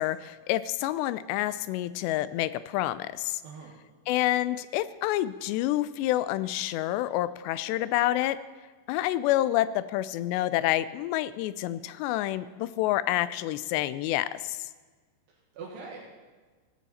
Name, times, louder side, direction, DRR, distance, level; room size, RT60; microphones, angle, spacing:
voice 1, 0.0-3.4 4.1-8.4 8.9-14.7, left 14 dB, 90° left, 15 dB, 2.8 m, -28 dB
voice 2, 3.4-3.8 15.3-16.2, right 4 dB, 75° right, -3 dB, 3.7 m, -43 dB
17.5 x 15.0 x 4.2 m, 1.4 s
omnidirectional pair, 4.8 m